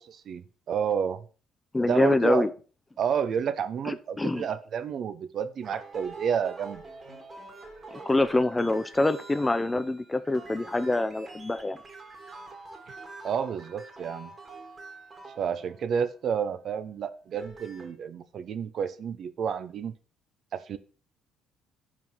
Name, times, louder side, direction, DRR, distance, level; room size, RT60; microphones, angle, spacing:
voice 1, 0.3-1.2 1.8-2.5 3.0-6.8 13.2-14.3 15.4-19.9 20.5-20.8, right 7 dB, 55° right, 12 dB, 0.6 m, -30 dB
voice 2, 1.7-2.5 3.9-4.5 7.9-11.8, left 2 dB, 15° left, 13 dB, 0.5 m, -25 dB
sound 1, 5.6-16.1 17.2-17.9, right 3 dB, 35° right, 2.1 m, -46 dB
5.5 x 5.0 x 6.1 m, 0.37 s
cardioid pair, 90°, 0 cm